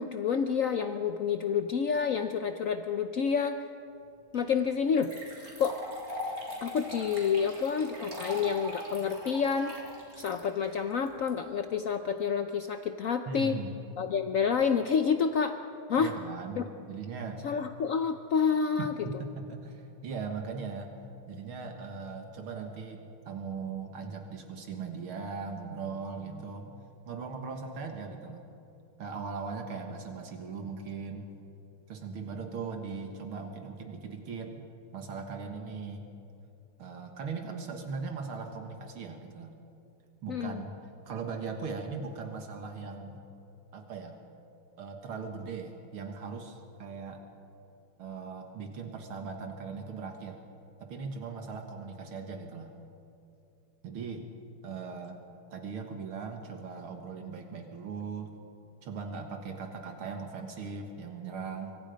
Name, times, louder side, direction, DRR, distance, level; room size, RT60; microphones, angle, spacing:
voice 1, 0.0-3.6 4.3-5.1 5.6-5.8 6.6-9.7 10.2-13.6 14.0-15.6 15.9-16.1 16.6-16.7 17.4-18.9 40.3-40.6, left 6 dB, 70° left, 7 dB, 0.8 m, -28 dB
sound 1, 4.3-4.4 5.0-11.3, equal, 40° right, 4.0 m, -41 dB
voice 2, 13.3-13.7 16.0-17.4 18.8-20.9 21.3-23.0 23.3-26.7 27.1-28.5 29.0-31.3 31.9-34.6 34.9-36.1 36.8-39.6 40.2-40.8 41.1-43.2 43.7-44.2 44.8-47.2 48.0-50.4 50.8-52.8 53.8-54.3 54.6-55.2 55.5-58.3 58.8-61.8, right 5 dB, 75° right, 4 dB, 2.4 m, -39 dB
25.0 x 24.5 x 5.2 m, 2.7 s
omnidirectional pair, 2.4 m